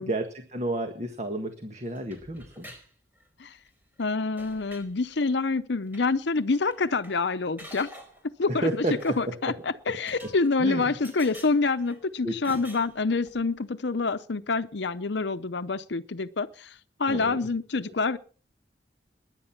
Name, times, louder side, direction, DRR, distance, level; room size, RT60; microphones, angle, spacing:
voice 1, 0.0-2.7 8.5-9.2 9.4-9.5 10.6-10.9 12.2-12.4 17.1-17.4 17.9-18.0, right 1 dB, 35° right, 1.7 m, -31 dB
sound 1, 2.0-2.9 3.2-3.7 4.0-4.1 4.4-4.9 5.9-6.1 6.3-6.4 6.7-7.2 7.6-8.3 8.9-9.4 10.1-10.7 11.0-12.0 12.4-13.4, equal, 10° right, 4.7 m, -47 dB
voice 2, 4.0-7.9 8.4-18.2, left 3 dB, 70° left, 0.7 m, -27 dB
21.0 x 10.5 x 5.9 m
head